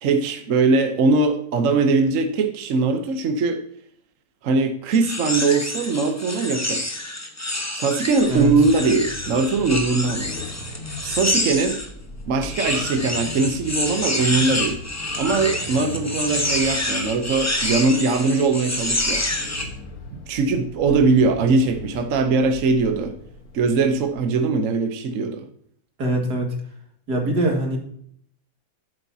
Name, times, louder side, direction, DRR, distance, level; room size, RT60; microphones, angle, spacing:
voice 1, 0.0-3.6 4.4-6.8 7.7-10.3 11.0-11.8 12.3-14.8 15.2-19.2 20.1-23.1 23.5-25.4, right 3 dB, 55° right, 6 dB, 1.1 m, -21 dB
sound 1, 4.9-11.9 12.4-19.7, left 1 dB, 10° left, 0.9 m, -27 dB
sound 2, 8.2-24.2, left 2 dB, 55° left, 1.5 m, -38 dB
voice 2, 26.0-26.6 27.1-27.8, right 1 dB, 75° right, 0 dB, 2.6 m, -22 dB
11.5 x 8.0 x 2.8 m, 0.65 s
omnidirectional pair, 1.7 m